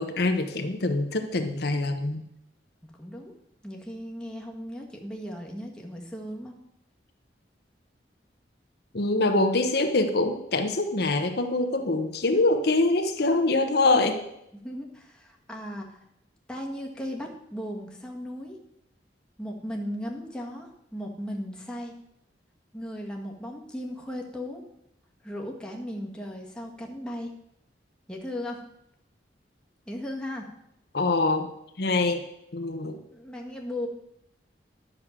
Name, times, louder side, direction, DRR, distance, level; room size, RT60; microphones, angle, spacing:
voice 1, 0.0-2.2 8.9-14.2 30.9-31.5 31.8-32.2 32.5-33.0, left 2 dB, 60° left, 5 dB, 1.0 m, -24 dB
voice 2, 3.0-3.3 3.6-6.5 13.2-13.5 14.6-16.0 16.5-18.6 19.4-21.9 22.7-24.6 25.2-27.3 28.1-28.6 29.9-30.4 33.1-33.9, equal, 5° left, -1 dB, 1.6 m, -36 dB
11.0 x 6.5 x 7.3 m, 0.79 s
head